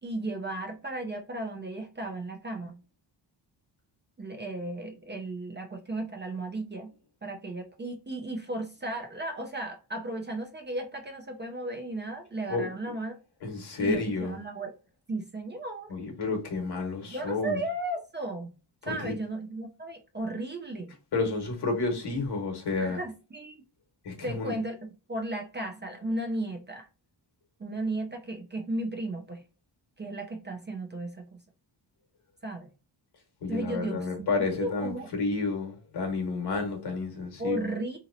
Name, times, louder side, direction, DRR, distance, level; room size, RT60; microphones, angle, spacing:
voice 1, 0.0-2.8 4.2-6.9 7.2-13.2 13.8-14.7 15.1-15.9 17.1-18.5 18.8-21.0 22.8-23.6 24.2-26.9 27.6-29.4 30.0-31.4 32.4-32.7 33.5-34.1 34.4-35.2 37.4-38.0, right 2 dB, 25° right, 0.4 m, -35 dB
voice 2, 13.4-14.4 15.9-17.6 18.8-19.1 21.1-23.0 24.0-24.5 33.4-37.7, left 3 dB, 60° left, 1.1 m, -30 dB
2.9 x 2.8 x 2.5 m
cardioid pair, 115°, 45 cm